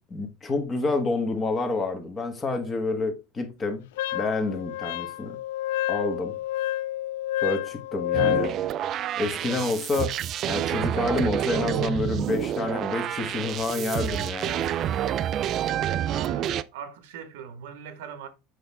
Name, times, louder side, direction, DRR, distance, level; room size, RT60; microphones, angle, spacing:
voice 1, 0.1-3.8 4.1-5.4 5.9-6.4 7.4-8.5 9.2-10.2 10.5-14.7, left 3 dB, 15° left, 1.2 m, -28 dB
Wind instrument woodwind instrument, 4.0-8.6, left 14 dB, 85° left, 0.3 m, -29 dB
sound 1, 8.1-16.6, right 10 dB, 30° right, 0.3 m, -28 dB
voice 2, 16.0-18.3, right 7 dB, 75° right, 1.3 m, -41 dB
7.9 x 5.4 x 3.4 m
cardioid pair, 175°, 0 cm